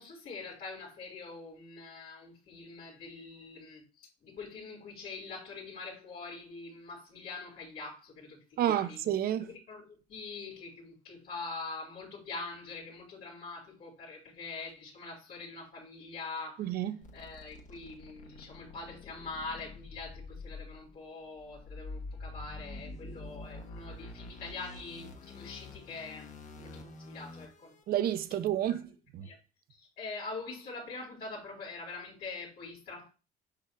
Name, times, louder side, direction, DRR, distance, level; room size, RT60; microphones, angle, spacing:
voice 1, 0.0-9.0 9.4-16.7 17.1-27.7 28.7-28.9 29.2-29.4 29.7-33.1, left 3 dB, 70° left, 3.9 m, -44 dB
voice 2, 8.6-9.5 16.6-17.0 27.9-29.3, right 11 dB, 65° right, 0.6 m, -30 dB
sound 1, 17.0-27.8, left 3 dB, 50° left, 1.1 m, -47 dB
8.4 x 6.1 x 2.2 m
cardioid pair, 110°, 17 cm